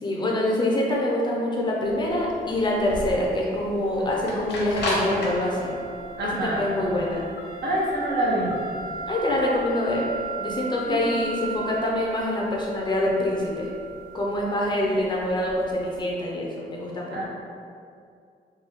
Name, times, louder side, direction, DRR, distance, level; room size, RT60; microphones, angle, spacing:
voice 1, 0.0-5.7 6.4-7.2 9.1-10.1 10.4-13.7 14.1-17.2, left 1 dB, 25° left, -3 dB, 0.4 m, -25 dB
sound 1, 1.9-16.0, right 1 dB, 85° left, 0.8 m, -35 dB
voice 2, 6.2-6.6 7.6-8.5 10.9-11.0 17.1-17.2, right 1 dB, 80° right, -4 dB, 0.8 m, -25 dB
3.7 x 2.2 x 3.4 m, 2.3 s
wide cardioid pair, 180°, 18 cm